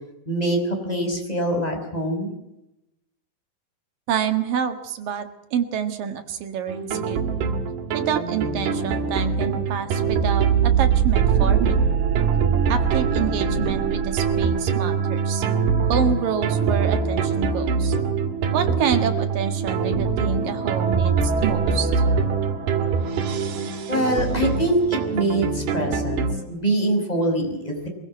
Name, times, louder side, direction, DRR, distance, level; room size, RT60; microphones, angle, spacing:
voice 1, 0.3-0.6 0.8-2.3 23.9-27.9, right 1 dB, 10° left, 2 dB, 5.3 m, -24 dB
voice 2, 4.1-7.2 7.9-11.8 12.7-15.4 15.9-17.9 18.5-21.9, right 8 dB, 70° right, 8 dB, 3.2 m, -28 dB
sound 1, 6.7-26.3, right 6 dB, 85° right, 4.2 m, -23 dB
23.5 x 16.0 x 7.7 m, 0.89 s
omnidirectional pair, 4.3 m